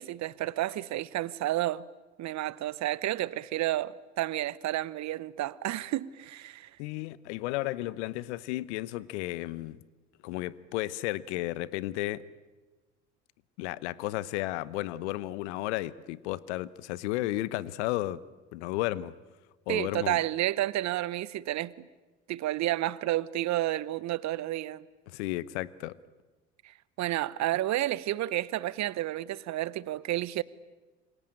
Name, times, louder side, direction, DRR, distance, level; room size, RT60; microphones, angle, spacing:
voice 1, 0.0-1.8 2.2-6.7 19.7-21.7 22.3-24.8 27.0-30.4, right 15 dB, 50° right, 1.0 m, -31 dB
voice 2, 6.8-9.8 10.2-12.2 13.6-18.2 18.5-19.1 19.7-20.2 25.1-25.9, left 17 dB, 70° left, 1.0 m, -33 dB
27.0 x 23.5 x 8.9 m
hypercardioid pair, 60°, 35 cm